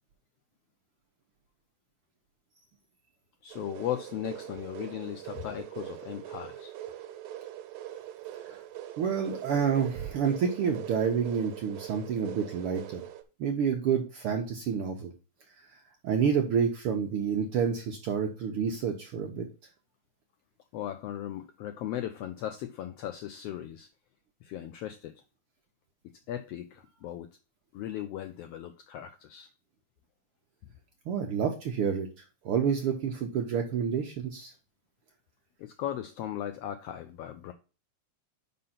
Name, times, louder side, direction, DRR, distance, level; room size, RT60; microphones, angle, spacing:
voice 1, 3.4-6.7 20.7-23.9 24.4-25.1 26.3-27.3 27.7-29.5 35.6-37.5, left 11 dB, 80° left, 1.4 m, -37 dB
sound 1, 3.5-13.2, right 12 dB, 85° right, 2.3 m, -42 dB
voice 2, 9.0-13.0 13.4-15.1 16.0-19.5 31.1-32.1 32.4-34.5, right 7 dB, 65° right, 1.4 m, -29 dB
5.5 x 5.3 x 5.7 m
omnidirectional pair, 3.4 m